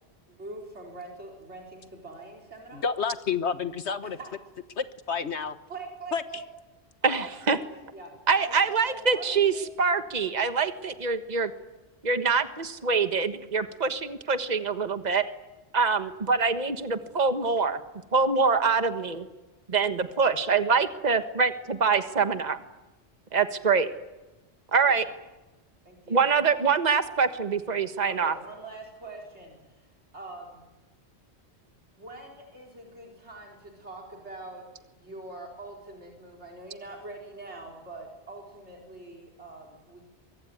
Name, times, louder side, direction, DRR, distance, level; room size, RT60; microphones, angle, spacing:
voice 1, 0.3-2.9 4.0-4.3 5.7-6.4 7.0-7.7 7.9-8.1 8.4-9.7 24.9-25.1 25.8-26.3 28.0-29.9 30.1-30.6 32.0-34.6 34.9-40.0, right 2 dB, 85° right, 0 dB, 4.7 m, -43 dB
voice 2, 2.7-4.2 4.8-5.6 6.1-6.2, left 6 dB, 85° left, 11 dB, 1.6 m, -29 dB
voice 3, 7.0-7.6 8.3-11.5 12.0-15.2 15.7-17.8 18.1-19.3 19.7-22.6 23.3-23.9 24.7-25.0 26.1-28.3, right 5 dB, 40° right, 9 dB, 1.6 m, -25 dB
24.0 x 23.5 x 9.5 m, 1.1 s
omnidirectional pair, 1.1 m